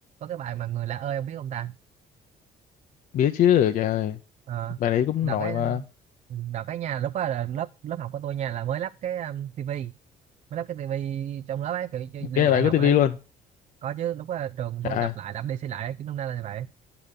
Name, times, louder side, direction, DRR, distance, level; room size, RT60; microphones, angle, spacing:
voice 1, 0.2-1.8 4.5-4.8 5.2-5.9 6.3-9.9 10.5-13.0 13.8-16.7, right 10 dB, 45° right, 0.4 m, -31 dB
voice 2, 3.1-4.2 4.8-5.8 12.4-13.2 14.8-15.1, left 10 dB, 55° left, 0.6 m, -22 dB
9.4 x 6.8 x 3.6 m
cardioid pair, 110°, 17 cm